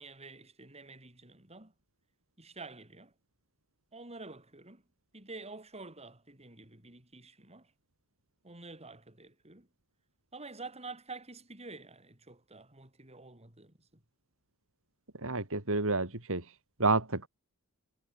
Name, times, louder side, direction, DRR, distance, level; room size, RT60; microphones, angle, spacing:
voice 1, 0.0-1.7 2.4-3.1 3.9-4.8 5.1-7.7 8.4-9.7 10.3-14.0, right 3 dB, 30° right, 5.2 m, -48 dB
voice 2, 15.1-17.3, right 3 dB, 65° right, 3.7 m, -30 dB
head